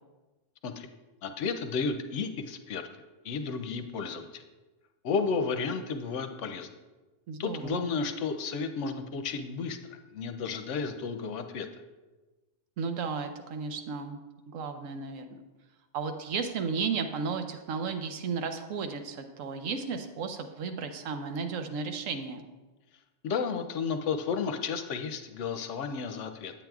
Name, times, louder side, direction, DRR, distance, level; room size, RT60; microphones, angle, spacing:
voice 1, 1.2-2.9 3.2-4.4 5.0-6.7 7.4-11.7 23.2-26.5, left 5 dB, 70° left, 7 dB, 0.9 m, -32 dB
voice 2, 7.3-7.9 12.8-14.2 14.5-15.4 15.9-22.5, right 5 dB, 80° right, 6 dB, 1.1 m, -34 dB
8.8 x 8.8 x 2.3 m, 1.2 s
omnidirectional pair, 1.4 m